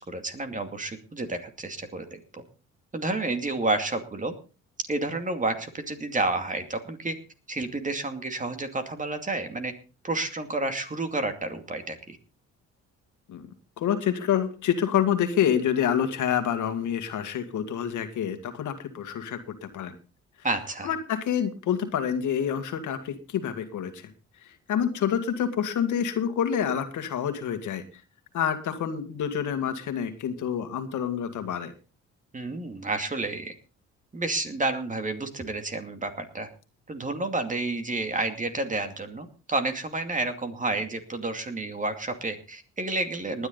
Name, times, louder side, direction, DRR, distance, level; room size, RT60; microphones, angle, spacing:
voice 1, 0.0-2.2 2.9-4.3 4.9-7.1 7.5-9.7 10.0-12.2 20.4-20.9 32.3-33.5 34.1-36.5 36.9-43.5, right 2 dB, 25° right, 7 dB, 2.5 m, -30 dB
voice 2, 13.8-19.9 20.8-24.1 24.4-27.8 28.3-31.7, left 8 dB, 75° left, 8 dB, 2.0 m, -27 dB
19.5 x 10.0 x 3.9 m, 0.33 s
cardioid pair, 90°, 30 cm